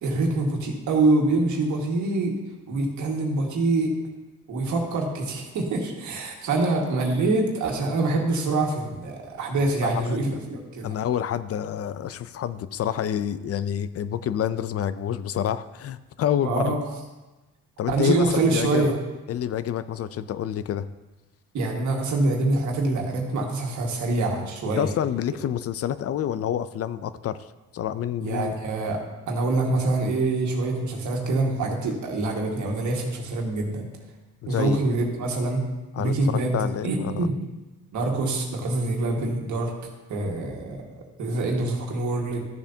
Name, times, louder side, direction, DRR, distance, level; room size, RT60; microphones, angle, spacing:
voice 1, 0.0-2.3 2.7-3.9 4.5-10.9 16.4-16.8 17.9-18.9 21.5-24.9 28.2-29.0 29.3-33.9 34.5-35.6 36.0-36.5 36.8-37.3 37.9-39.7 40.1-40.9 41.2-42.4, right 2 dB, 75° right, 0 dB, 1.8 m, -25 dB
voice 2, 9.8-10.3 10.8-16.8 17.8-18.9 19.3-20.9 24.8-27.4 27.7-28.5 34.4-34.8 35.9-37.3, left 10 dB, 50° left, 15 dB, 0.5 m, -28 dB
13.5 x 6.9 x 2.8 m, 1.1 s
cardioid pair, 90°, 30 cm